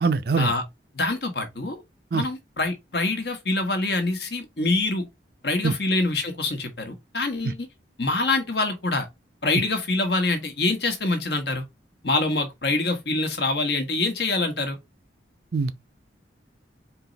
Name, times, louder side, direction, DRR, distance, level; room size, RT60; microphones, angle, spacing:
voice 1, 0.0-0.5 2.1-2.2 5.6-5.7 15.5-15.7, right 4 dB, 55° right, 0.5 m, -22 dB
voice 2, 0.9-1.8 2.1-5.1 5.4-7.7 8.0-9.1 9.4-11.6 12.0-14.8, left 2 dB, 60° left, 1.2 m, -25 dB
4.5 x 3.0 x 3.9 m
head